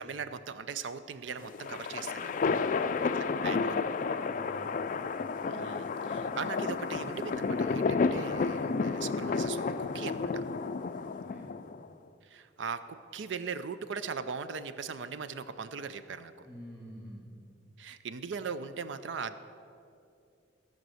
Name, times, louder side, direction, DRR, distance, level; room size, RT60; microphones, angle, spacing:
voice 1, 0.0-2.4 3.1-3.9 5.4-10.4 12.2-16.5 17.8-19.4, right 5 dB, 75° right, 12 dB, 0.5 m, -39 dB
sound 1, 1.4-11.9, left 4 dB, 45° left, 0.4 m, -31 dB
voice 2, 2.6-3.1 4.2-5.0 11.0-11.6 16.4-17.3, equal, 10° right, -3 dB, 2.6 m, -49 dB
14.0 x 5.3 x 7.6 m, 2.5 s
head